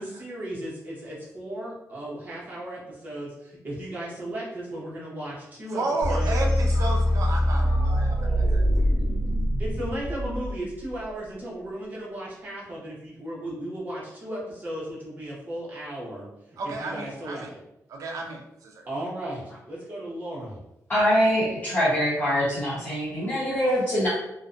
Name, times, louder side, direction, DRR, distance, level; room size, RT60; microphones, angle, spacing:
voice 1, 0.0-5.8 6.1-6.3 9.6-16.3 16.8-17.6 18.9-20.6, right 1 dB, 30° right, -6 dB, 0.8 m, -35 dB
voice 2, 5.7-8.6 16.6-17.5 17.9-18.9, right 2 dB, 70° right, 1 dB, 0.3 m, -32 dB
sound 1, 6.0-10.9, equal, 85° left, 0.7 m, -23 dB
voice 3, 20.9-24.1, equal, 30° left, -11 dB, 0.9 m, -23 dB
2.5 x 2.1 x 2.4 m, 0.86 s
wide cardioid pair, 150°, 6 cm